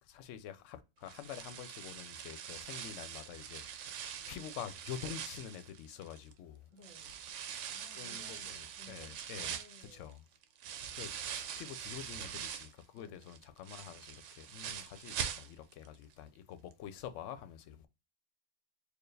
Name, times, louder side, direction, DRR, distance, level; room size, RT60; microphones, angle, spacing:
voice 1, 0.0-6.7 7.9-9.5 9.9-10.3 10.9-11.1 11.6-17.9, left 9 dB, 75° left, 0.9 m, -47 dB
sound 1, 1.1-6.3 6.8-12.8 13.2-15.9 16.1-16.2 16.7-16.8, right 8 dB, 75° right, 0.9 m, -43 dB
voice 2, 6.7-7.2 7.6-10.1 10.9-11.1 13.0-13.3, equal, 20° left, 1.6 m, -59 dB
4.5 x 2.4 x 3.1 m
omnidirectional pair, 1.3 m